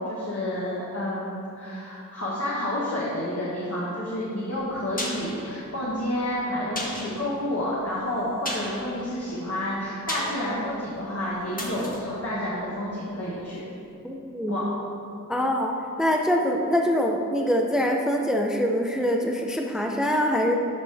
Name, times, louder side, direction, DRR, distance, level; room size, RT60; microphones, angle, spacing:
voice 1, 0.0-13.6 14.5-14.6, left 1 dB, 50° left, -8 dB, 1.4 m, -30 dB
sound 1, 4.6-13.4 13.7-13.8, left 1 dB, 25° left, 1.4 m, -37 dB
voice 2, 14.0-14.6 15.3-15.7 16.0-20.6, equal, ahead, 1 dB, 0.6 m, -24 dB
12.5 x 5.1 x 3.4 m, 2.8 s
wide cardioid pair, 50°, 32 cm